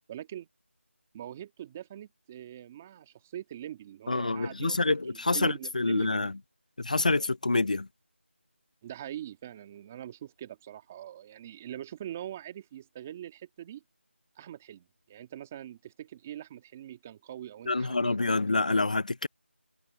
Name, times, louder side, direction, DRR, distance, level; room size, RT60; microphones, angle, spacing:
voice 1, 0.1-0.5 1.1-6.3 8.8-13.8 14.3-18.3, right 11 dB, 10° right, 1.7 m, -43 dB
voice 2, 4.1-6.3 6.8-7.9 17.7-19.3, left 3 dB, 35° left, 0.5 m, -27 dB
figure-of-eight pair, 175°, 7 cm